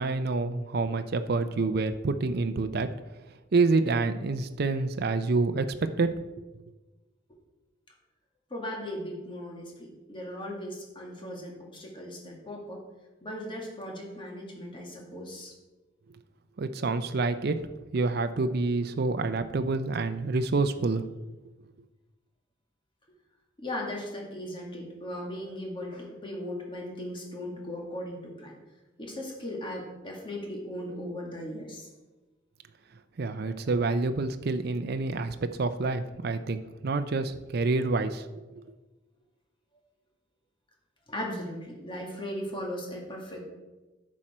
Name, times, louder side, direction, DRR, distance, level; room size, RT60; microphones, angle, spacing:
voice 1, 0.0-2.9 3.5-6.2 16.6-17.6 17.9-21.0 33.2-38.6, right 3 dB, 55° right, 9 dB, 0.5 m, -27 dB
voice 2, 8.5-12.8 13.2-15.5 23.6-28.5 29.0-31.9 33.4-33.5 41.1-43.4, left 1 dB, 25° left, -1 dB, 2.1 m, -38 dB
11.0 x 7.4 x 4.4 m, 1.1 s
head